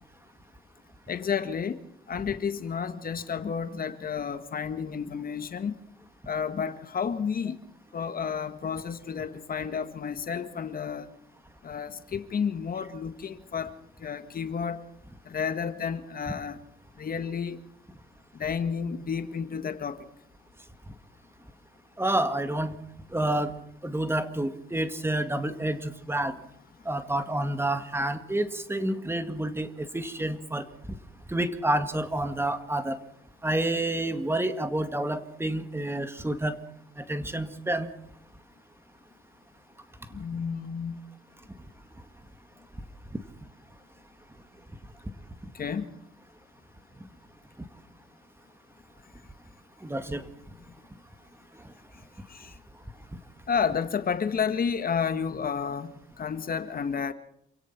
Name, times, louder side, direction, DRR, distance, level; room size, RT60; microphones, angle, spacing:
voice 1, 1.1-1.8 2.1-5.8 6.3-7.6 7.9-11.1 11.6-13.7 14.0-14.8 15.2-16.6 17.0-17.6 18.3-20.1 40.1-41.0 45.5-45.9 52.3-52.5 53.5-55.9 56.2-57.1, left 6 dB, 45° left, 1.7 m, -31 dB
voice 2, 22.0-22.7 23.1-23.5 23.8-26.3 26.9-30.6 31.3-33.0 33.4-36.6 37.0-37.9 49.8-50.2, right 1 dB, 10° right, 2.1 m, -29 dB
27.5 x 17.0 x 6.0 m
cardioid pair, 90°, 20 cm